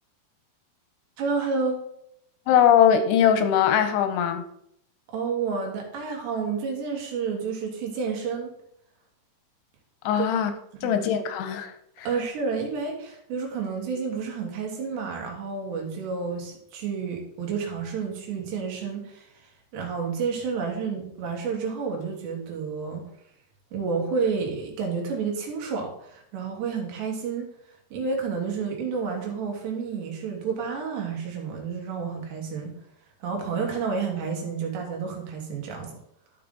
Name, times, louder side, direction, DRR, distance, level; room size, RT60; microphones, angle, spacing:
voice 1, 1.2-1.8 5.1-8.5 10.2-10.3 10.7-11.0 12.1-19.3 19.7-23.1 23.7-27.5 27.9-32.7 33.2-36.0, right 5 dB, 80° right, 3.9 m, -30 dB
voice 2, 2.5-4.4 10.0-10.5 10.8-12.1, left 9 dB, 85° left, 2.8 m, -21 dB
13.0 x 5.1 x 3.8 m
omnidirectional pair, 4.9 m